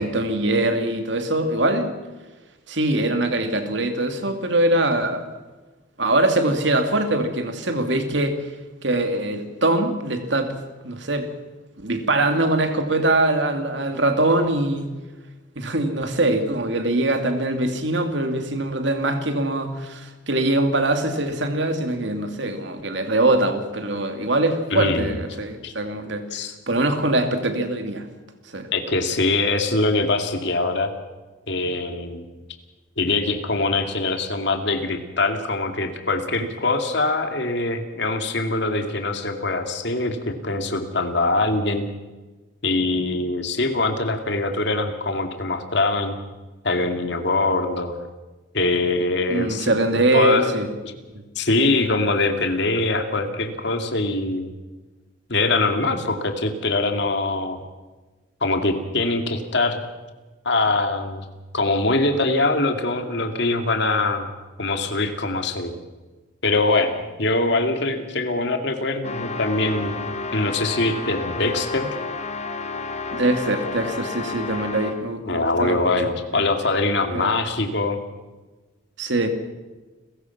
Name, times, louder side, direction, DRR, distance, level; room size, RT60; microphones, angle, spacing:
voice 1, 0.0-1.9 2.7-5.3 6.0-8.4 8.8-10.5 10.8-11.3 11.8-14.9 15.6-26.2 26.7-28.1 28.5-28.7 49.3-50.7 73.1-75.9 77.1-77.3 79.0-79.3, right 2 dB, 60° right, 7 dB, 2.7 m, -22 dB
voice 2, 24.7-25.2 25.6-25.7 26.3-26.5 28.7-30.9 31.5-32.2 33.0-41.9 42.6-46.2 46.6-48.0 48.5-50.5 50.8-50.9 51.4-54.5 55.3-57.6 58.4-59.8 60.4-61.3 61.5-64.3 64.6-65.8 66.4-72.0 75.3-78.0, left 2 dB, 60° left, 6 dB, 2.4 m, -23 dB
sound 1, 69.0-75.1, left 4 dB, 35° left, 1.4 m, -31 dB
30.0 x 15.5 x 6.0 m, 1.2 s
head